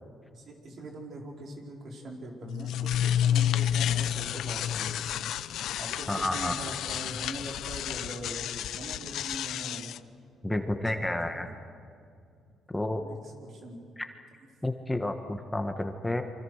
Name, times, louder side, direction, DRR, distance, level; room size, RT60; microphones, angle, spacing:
voice 1, 0.3-5.2 5.8-9.9 10.5-11.6 13.0-13.8, right 1 dB, 60° right, 0 dB, 4.8 m, -42 dB
sound 1, 2.4-10.0, left 10 dB, 80° left, 0.6 m, -30 dB
voice 2, 6.1-6.5 10.4-11.5 12.7-13.0 14.6-16.2, left 1 dB, 10° left, 6 dB, 1.5 m, -30 dB
28.5 x 24.5 x 6.6 m, 2.3 s
cardioid pair, 90°, 0 cm